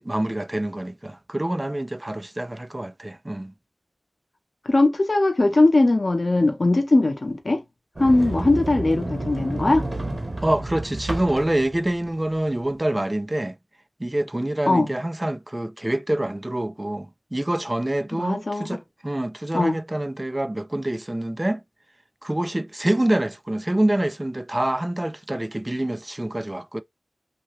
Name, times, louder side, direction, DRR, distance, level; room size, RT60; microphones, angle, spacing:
voice 1, 0.0-3.5 10.4-13.6 14.0-21.6 22.2-26.8, right 1 dB, 20° right, 0.3 m, -26 dB
voice 2, 4.7-7.6 8.0-9.9 14.7-14.9 18.1-18.8 19.5-19.8, left 2 dB, 50° left, 0.8 m, -20 dB
Sliding door, 8.0-12.8, right 2 dB, 40° right, 0.9 m, -31 dB
2.8 x 2.6 x 3.0 m
wide cardioid pair, 65°, 0 cm